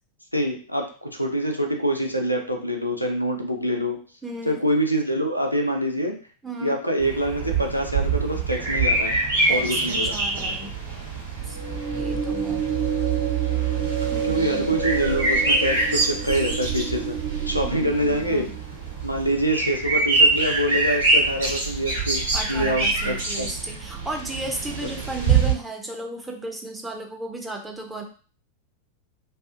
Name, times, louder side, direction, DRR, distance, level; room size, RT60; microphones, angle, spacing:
voice 1, 0.3-4.0 4.5-6.1 6.6-9.2 9.5-10.2 14.2-17.2 17.5-18.4 19.0-22.2 22.5-23.5 24.8-24.9, equal, 90° left, 2 dB, 0.4 m, -25 dB
voice 2, 4.2-4.6 6.4-6.8 9.5-10.7 11.4-11.6 11.9-12.6 14.1-14.8 17.6-18.6 22.3-28.0, right 2 dB, 5° right, 1 dB, 0.5 m, -35 dB
sound 1, 7.0-25.5, right 3 dB, 70° right, 1.1 m, -25 dB
sound 2, 11.4-18.8, right 5 dB, 50° right, 0.8 m, -30 dB
2.6 x 2.4 x 2.5 m, 0.40 s
figure-of-eight pair, 90°, 0 cm